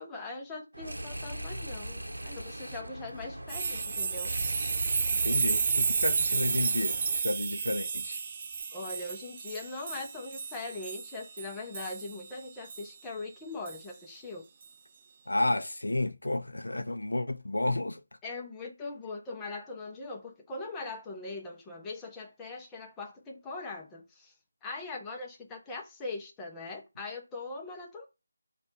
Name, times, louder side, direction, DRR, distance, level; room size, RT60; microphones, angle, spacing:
voice 1, 0.0-4.7 8.7-14.5 18.2-24.3 24.6-28.1, left 3 dB, 10° left, 0.8 m, -41 dB
sound 1, 0.7-7.2, right 1 dB, 80° right, 0.8 m, -39 dB
sound 2, 3.5-12.1 12.7-12.8 13.7-13.8, right 5 dB, 30° right, 0.4 m, -31 dB
voice 2, 5.1-8.2 15.3-18.0, left 2 dB, 75° left, 0.6 m, -31 dB
4.3 x 2.5 x 4.4 m
figure-of-eight pair, 160°, 0 cm